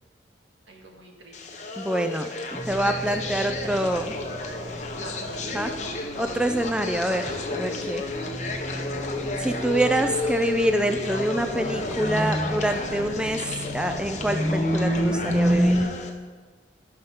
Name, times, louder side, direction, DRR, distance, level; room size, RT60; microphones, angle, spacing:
voice 1, 0.7-1.6 3.2-4.5 5.0-5.6 7.5-7.6 10.0-10.1, right 2 dB, 85° right, 0 dB, 1.8 m, -44 dB
sound 1, 1.3-16.1, left 2 dB, 40° left, 0.8 m, -32 dB
voice 2, 1.8-4.1 5.5-5.7 6.2-8.0 9.4-15.8, right 1 dB, 5° right, 6 dB, 0.3 m, -26 dB
sound 2, 2.5-15.8, equal, 25° right, 2.2 m, -30 dB
16.5 x 5.5 x 3.6 m, 1.4 s
head